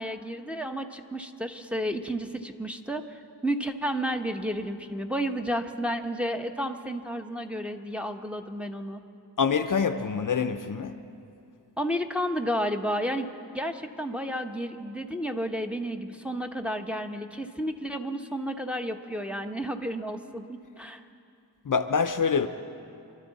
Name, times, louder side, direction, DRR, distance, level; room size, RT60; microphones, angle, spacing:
voice 1, 0.0-9.0 11.8-21.0, equal, 5° right, 4 dB, 1.0 m, -32 dB
voice 2, 9.4-11.0 21.6-22.5, left 6 dB, 50° left, 9 dB, 0.7 m, -25 dB
27.0 x 12.0 x 4.1 m, 2.5 s
cardioid pair, 60°, 41 cm